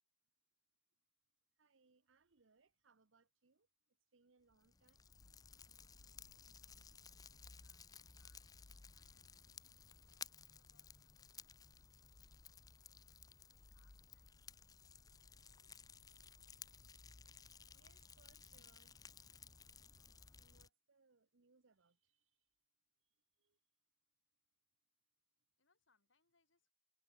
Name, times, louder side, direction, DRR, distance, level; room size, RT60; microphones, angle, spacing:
voice 1, 1.6-5.0 17.7-19.0 20.0-20.1 20.4-22.3 23.4-23.6, right 4 dB, 85° right, 1.0 m, -74 dB
Fire, 4.5-20.7, left 6 dB, 20° left, 0.5 m, -58 dB
voice 2, 7.1-15.8 25.6-26.7, left 4 dB, 90° left, 4.9 m, -84 dB
head